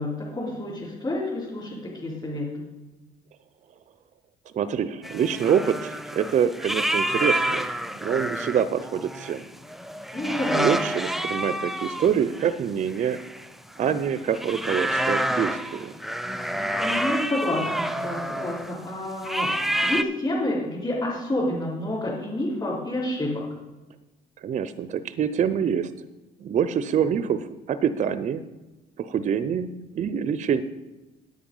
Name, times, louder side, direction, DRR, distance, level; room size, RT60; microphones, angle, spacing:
voice 1, 0.0-2.6 10.1-10.7 16.8-19.5 19.8-23.4, left 1 dB, 25° left, -8 dB, 3.8 m, -29 dB
voice 2, 4.5-7.7 8.0-9.5 10.5-13.2 13.8-15.9 24.4-25.9 26.4-28.4 29.0-30.6, right 8 dB, 45° right, 13 dB, 0.6 m, -25 dB
sound 1, 5.0-18.8 19.2-20.0, right 1 dB, ahead, 0.6 m, -29 dB
9.6 x 8.9 x 5.4 m, 1.1 s
cardioid pair, 110°, 17 cm